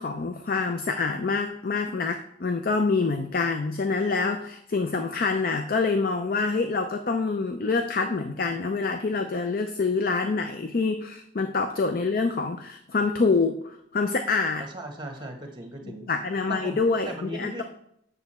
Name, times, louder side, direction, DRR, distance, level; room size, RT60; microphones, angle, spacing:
voice 1, 0.0-14.6 16.1-17.6, left 4 dB, 50° left, 7 dB, 0.5 m, -26 dB
voice 2, 14.6-16.1 16.5-16.8 17.1-17.6, right 1 dB, 25° right, 4 dB, 1.2 m, -37 dB
8.2 x 6.8 x 4.3 m, 0.73 s
head